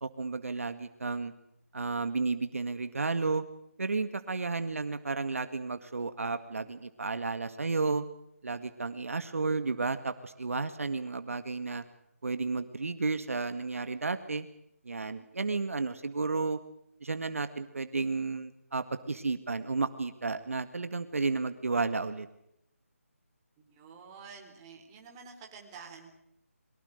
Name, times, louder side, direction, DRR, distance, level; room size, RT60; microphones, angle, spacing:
voice 1, 0.0-1.3 1.7-3.4 3.8-8.1 8.4-11.8 12.2-14.5 14.9-16.6 17.0-22.3, right 3 dB, 65° right, 10 dB, 1.9 m, -32 dB
voice 2, 23.6-26.1, right 5 dB, 20° right, 3 dB, 4.0 m, -49 dB
23.5 x 22.0 x 6.6 m, 0.78 s
figure-of-eight pair, 165°, 8 cm